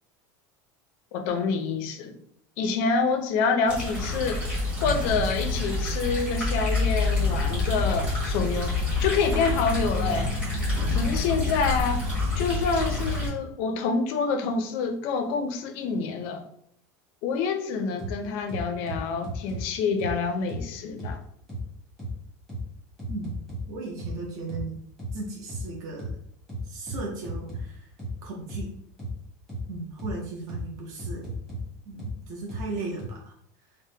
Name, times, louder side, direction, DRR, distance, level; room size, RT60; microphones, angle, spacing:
voice 1, 1.1-2.2 2.6-4.4 4.8-8.7 9.0-10.3 10.9-12.1 12.3-16.4 17.2-21.2, left 5 dB, 55° left, 6 dB, 0.4 m, -27 dB
sound 1, 3.7-13.3, left 2 dB, 15° right, 1.2 m, -27 dB
sound 2, 18.0-18.1 18.5-19.6 20.0-20.1 20.5-20.6 21.0-21.1 21.5-21.6 22.0-22.1 22.5-22.6 23.0-23.6 24.0-24.1 24.5-24.6 25.0-25.1 25.5-25.6 26.0-26.1 26.5-27.6 28.0-28.1 28.5-28.6 29.0-29.1 29.5-29.6 30.0-30.1 30.5-30.6 31.0-31.6 32.0-32.1 32.5-32.6 33.0-33.1, equal, 5° left, 0.9 m, -34 dB
voice 2, 23.1-23.4 23.7-24.7 25.1-26.1 26.6-27.9 28.2-28.7 29.7-31.3 31.9-33.3, right 3 dB, 35° right, -2 dB, 0.6 m, -36 dB
3.4 x 2.0 x 2.7 m, 0.70 s
supercardioid pair, 165°, 9 cm